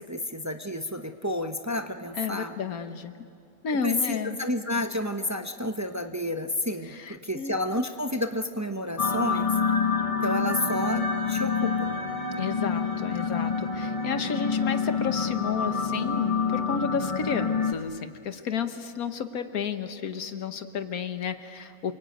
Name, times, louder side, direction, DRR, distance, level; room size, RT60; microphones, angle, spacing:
voice 1, 0.0-2.5 3.8-9.5 10.2-11.9, left 1 dB, 15° right, 6 dB, 0.8 m, -30 dB
voice 2, 2.2-3.3 3.6-4.4 6.8-7.5 12.4-21.9, left 6 dB, 80° left, 9 dB, 1.6 m, -32 dB
sound 1, 9.0-17.7, left 5 dB, 30° left, 0.8 m, -27 dB
Wind instrument woodwind instrument, 10.7-15.0 15.7-15.8, right 2 dB, 65° right, 4.4 m, -40 dB
28.0 x 23.5 x 9.0 m, 2.4 s
omnidirectional pair, 1.5 m